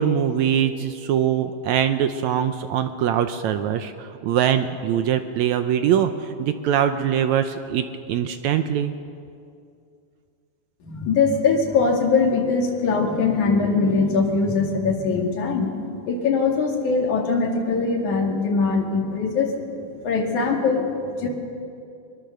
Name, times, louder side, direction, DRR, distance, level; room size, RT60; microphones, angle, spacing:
voice 1, 0.0-8.9, right 9 dB, 75° right, 9 dB, 1.8 m, -22 dB
voice 2, 10.8-15.7 16.1-19.6 19.9-21.3, left 4 dB, 60° left, 1 dB, 3.7 m, -22 dB
22.5 x 21.5 x 6.7 m, 2.5 s
omnidirectional pair, 3.9 m